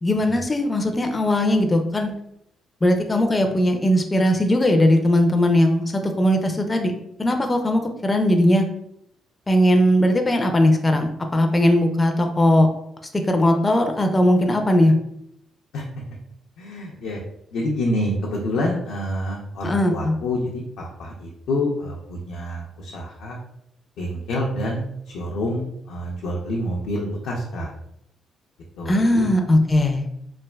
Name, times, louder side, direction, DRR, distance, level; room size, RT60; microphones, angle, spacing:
voice 1, 0.0-2.1 2.8-6.9 7.2-8.7 9.5-12.7 13.3-14.9 19.6-20.2 28.9-30.0, left 1 dB, 20° left, 5 dB, 0.4 m, -19 dB
voice 2, 16.6-17.2 17.5-23.4 24.0-27.7 28.8-29.3, left 1 dB, 85° left, -3 dB, 0.5 m, -27 dB
3.2 x 2.4 x 2.2 m, 0.77 s
cardioid pair, 90°, 0 cm